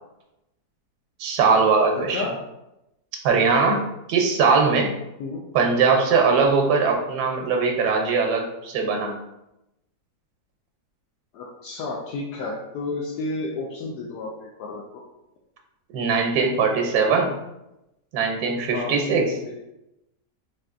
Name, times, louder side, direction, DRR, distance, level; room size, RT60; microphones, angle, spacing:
voice 1, 1.2-2.2 3.2-3.8 4.1-4.9 5.5-9.1 15.9-17.3 18.1-19.3, right 4 dB, 80° right, 2 dB, 1.2 m, -20 dB
voice 2, 2.0-2.4 5.2-5.4 6.3-6.4 11.3-15.0 18.7-19.0 19.3-19.6, left 3 dB, 85° left, -3 dB, 1.2 m, -32 dB
4.2 x 2.7 x 2.4 m, 0.90 s
omnidirectional pair, 1.7 m